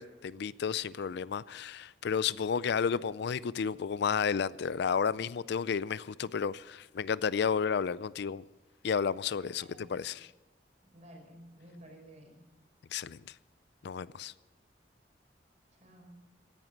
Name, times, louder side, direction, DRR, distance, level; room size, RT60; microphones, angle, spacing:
voice 1, 0.0-8.4 8.8-9.6 9.9-10.3 12.9-13.3 13.8-14.3, left 6 dB, 65° left, 0.4 m, -32 dB
voice 2, 9.6-9.9 10.8-12.4 15.7-16.2, right 1 dB, 40° right, 4.9 m, -53 dB
16.5 x 11.0 x 6.4 m
head